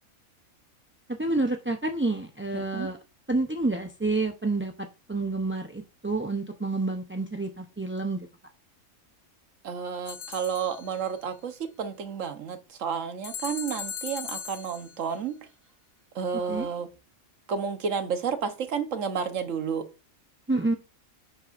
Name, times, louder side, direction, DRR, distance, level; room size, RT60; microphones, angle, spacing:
voice 1, 1.1-3.0 3.3-8.3 16.5-16.7 20.5-20.7, right 2 dB, 20° right, 0.3 m, -29 dB
voice 2, 2.5-2.9 9.6-15.4 16.1-16.9 17.5-19.8, right 6 dB, 65° right, 1.4 m, -31 dB
sound 1, 10.1-11.1 13.2-15.0, left 7 dB, 60° left, 1.0 m, -38 dB
10.0 x 7.8 x 2.6 m
omnidirectional pair, 1.5 m